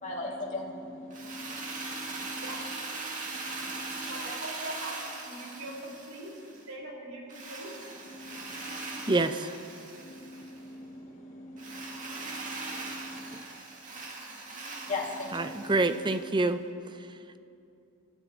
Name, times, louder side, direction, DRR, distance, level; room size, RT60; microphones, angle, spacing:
voice 1, 0.0-2.7 3.2-4.1 8.1-9.1 10.0-13.3 14.9-16.1, left 2 dB, 40° left, -3 dB, 2.3 m, -41 dB
Drill, 1.1-6.6 7.3-10.6 11.6-16.4, right 3 dB, 40° right, 2.1 m, -40 dB
voice 2, 4.1-7.7, right 1 dB, 85° right, -2 dB, 4.5 m, -41 dB
voice 3, 9.1-9.5 13.3-13.4 15.3-16.6, right 2 dB, 25° right, 10 dB, 0.6 m, -27 dB
30.0 x 13.0 x 3.7 m, 2.6 s
head